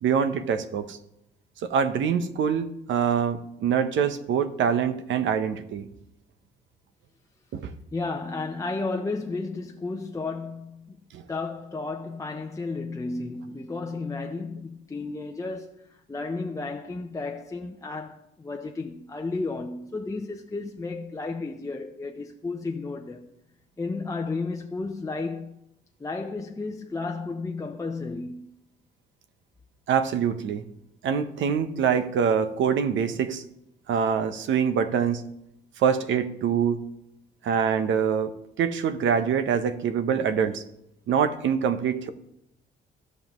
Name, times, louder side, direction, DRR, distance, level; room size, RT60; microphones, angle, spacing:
voice 1, 0.0-1.0 1.6-5.9 7.5-7.7 11.1-11.2 29.9-30.6 31.0-33.4 33.9-35.2 35.8-36.8 37.4-40.6 41.1-42.1, right 7 dB, 70° right, 0.8 m, -25 dB
voice 2, 7.9-11.0 11.3-23.3 23.8-25.6 26.0-28.5, left 3 dB, 15° left, 0.7 m, -33 dB
15.5 x 5.5 x 3.0 m
cardioid pair, 90°, 20 cm